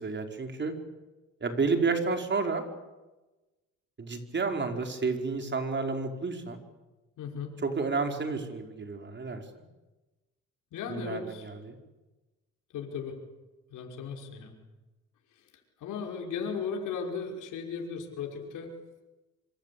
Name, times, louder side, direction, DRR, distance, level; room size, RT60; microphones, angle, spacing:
voice 1, 0.0-0.7 1.4-2.6 4.0-6.6 7.6-9.4 10.9-11.8, right 4 dB, 35° right, 5 dB, 5.1 m, -30 dB
voice 2, 7.2-7.5 10.7-11.5 12.7-13.2 13.7-14.5 15.8-18.7, left 6 dB, 85° left, 2 dB, 5.6 m, -36 dB
26.5 x 25.5 x 8.7 m, 1.1 s
cardioid pair, 90°, 30 cm